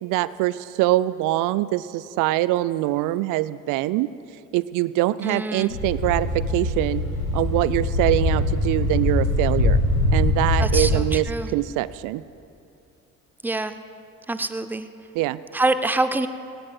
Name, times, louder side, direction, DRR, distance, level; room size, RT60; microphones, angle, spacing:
voice 1, 0.0-4.1 4.5-7.0 7.3-9.8 10.1-11.3 11.5-12.2 15.2-15.4, right 16 dB, 50° right, 16 dB, 0.5 m, -23 dB
voice 2, 5.2-5.8 10.6-11.5 13.4-13.8 14.3-14.9 15.5-16.3, right 2 dB, 5° right, 11 dB, 0.6 m, -25 dB
sound 1, 5.7-11.0, left 1 dB, 80° left, 2.9 m, -22 dB
24.5 x 18.0 x 2.4 m, 2.7 s
figure-of-eight pair, 50°, 42 cm